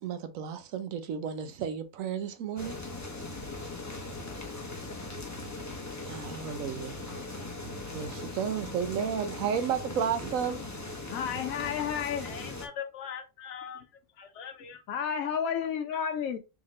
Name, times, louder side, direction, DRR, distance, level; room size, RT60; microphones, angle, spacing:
voice 1, 0.0-2.8 6.0-6.9 7.9-10.6, right 8 dB, 80° right, 1.0 m, -32 dB
sound 1, 2.6-12.7, left 2 dB, 20° left, 0.4 m, -39 dB
voice 2, 11.1-12.3 14.9-16.4, left 8 dB, 90° left, 1.1 m, -31 dB
voice 3, 12.2-13.9 14.2-14.8, left 8 dB, 65° left, 1.0 m, -41 dB
3.6 x 3.5 x 3.1 m
omnidirectional pair, 1.4 m